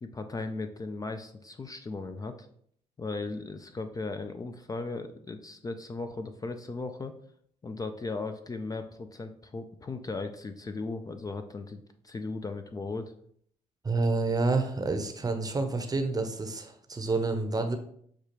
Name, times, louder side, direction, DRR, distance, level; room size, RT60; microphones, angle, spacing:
voice 1, 0.0-2.5 3.0-7.1 7.6-13.1, left 3 dB, 25° left, 7 dB, 0.4 m, -37 dB
voice 2, 13.8-17.8, right 3 dB, 25° right, 7 dB, 0.7 m, -28 dB
6.4 x 2.3 x 3.0 m, 0.65 s
supercardioid pair, 65°, 14 cm